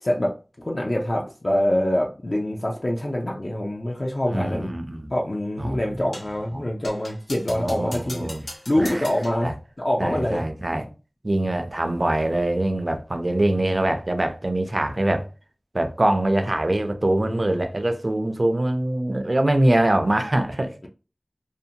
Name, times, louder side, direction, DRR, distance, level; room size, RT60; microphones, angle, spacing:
voice 1, 0.0-0.3 0.6-4.7 5.1-10.4, left 1 dB, 55° left, 0.4 m, -25 dB
voice 2, 4.3-5.1 5.6-5.8 6.5-6.7 7.5-8.4 8.8-9.1 9.4-9.5 10.0-10.8 11.2-15.3 15.7-20.9, right 1 dB, 55° right, 0.4 m, -23 dB
sound 1, 6.1-6.4 6.8-9.4, left 1 dB, 80° left, 0.9 m, -40 dB
2.6 x 2.1 x 2.7 m
wide cardioid pair, 40°, 0 cm